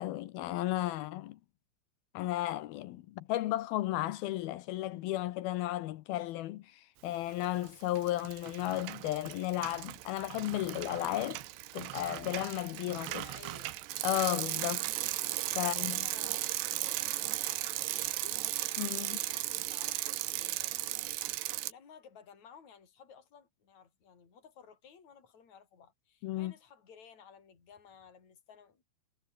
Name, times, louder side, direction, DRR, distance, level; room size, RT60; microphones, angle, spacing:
voice 1, 0.0-1.4 2.1-11.4 11.7-13.2 14.0-14.9 15.6-16.0 18.8-19.2 26.2-26.5, left 15 dB, 80° left, 2.3 m, -34 dB
Bicycle, 7.3-7.7 8.0-21.7, right 17 dB, 75° right, 3.0 m, -36 dB
voice 2, 13.1-13.8 15.6-18.5 19.0-21.1 21.6-28.8, left 7 dB, 40° left, 5.8 m, -56 dB
omnidirectional pair, 5.4 m